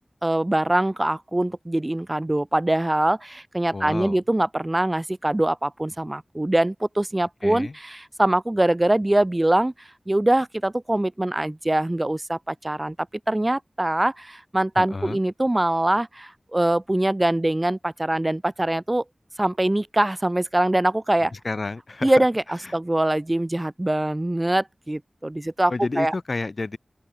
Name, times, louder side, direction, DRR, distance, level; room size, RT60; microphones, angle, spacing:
voice 1, 0.2-9.7 10.1-12.9 13.3-19.0 19.4-21.3 22.0-26.1, right 1 dB, 25° right, 2.8 m, -23 dB
voice 2, 3.7-4.2 7.4-7.7 14.8-15.2 21.2-22.1 22.6-22.8 25.7-26.8, left 3 dB, 60° left, 2.2 m, -30 dB
open air
wide cardioid pair, 50°, 0 cm